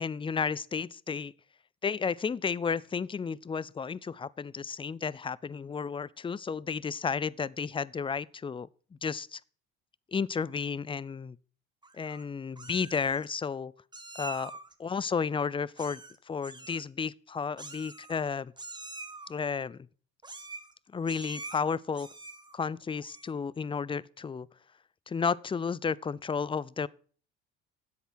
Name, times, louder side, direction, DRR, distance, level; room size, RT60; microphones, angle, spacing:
voice 1, 0.0-1.3 1.8-9.4 10.1-11.4 11.9-13.7 14.1-14.5 14.8-18.5 19.3-19.9 20.9-22.1 22.5-24.5 25.1-26.9, left 5 dB, 15° left, 0.4 m, -32 dB
Meow, 11.8-12.2 12.6-13.3 13.9-14.7 15.8-16.2 16.4-16.9 17.6-18.3 18.6-19.3 20.2-20.7 21.0-21.6 21.9-22.5 23.0-23.4, right 3 dB, 15° right, 1.6 m, -45 dB
10.5 x 8.0 x 6.2 m
supercardioid pair, 70°, 32 cm